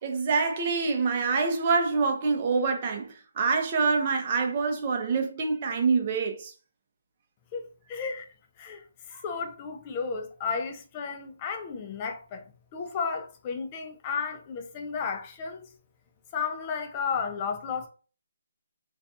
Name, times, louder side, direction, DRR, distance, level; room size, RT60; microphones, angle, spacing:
voice 1, 0.0-6.5, right 4 dB, 35° right, 0.6 m, -26 dB
voice 2, 7.5-8.3 8.6-12.4 12.7-15.7 16.3-17.9, left 5 dB, 25° left, 0.4 m, -33 dB
2.5 x 2.2 x 2.7 m
hypercardioid pair, 160°, 0 cm